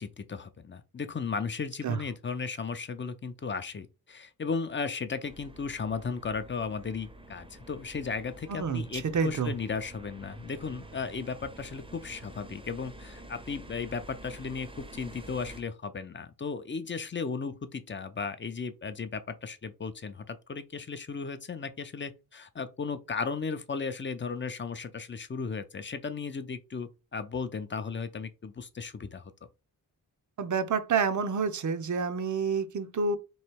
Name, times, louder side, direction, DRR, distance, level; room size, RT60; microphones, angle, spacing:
voice 1, 0.0-29.3, left 5 dB, 30° left, 0.5 m, -35 dB
sound 1, 5.2-15.6, right 1 dB, 15° right, 0.6 m, -48 dB
voice 2, 8.5-9.5 30.4-33.2, right 5 dB, 50° right, 0.7 m, -28 dB
3.1 x 2.7 x 4.5 m
cardioid pair, 90°, 40 cm